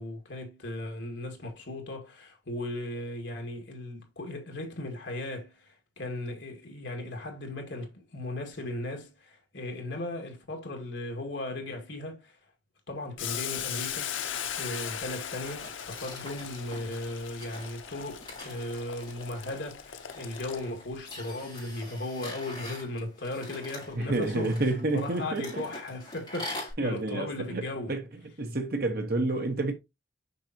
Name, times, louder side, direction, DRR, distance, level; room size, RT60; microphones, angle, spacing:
voice 1, 0.0-12.4 12.9-14.2 14.6-24.5 24.9-28.0, left 1 dB, 65° left, 2.0 m, -37 dB
Boiling, 13.2-21.0, left 9 dB, 80° left, 0.7 m, -38 dB
sound 1, 14.9-26.7, left 2 dB, 25° left, 4.5 m, -45 dB
voice 2, 23.9-25.7 26.8-28.1 28.4-29.7, right 2 dB, 50° right, 1.2 m, -29 dB
6.8 x 5.7 x 2.9 m
head